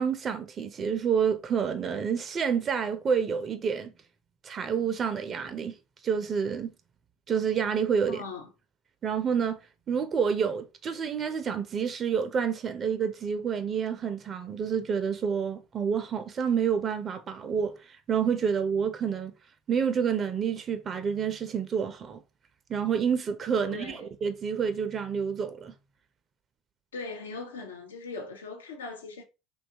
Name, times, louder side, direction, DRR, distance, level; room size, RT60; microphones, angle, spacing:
voice 1, 0.0-3.9 4.4-5.7 6.0-6.7 7.3-8.2 9.0-9.6 9.9-19.3 19.7-22.2 22.7-25.7, right 7 dB, 40° right, 0.4 m, -28 dB
voice 2, 8.1-8.5 23.6-24.0 26.9-29.2, left 3 dB, 90° left, 0.5 m, -40 dB
2.6 x 2.3 x 2.7 m
hypercardioid pair, 70°, 0 cm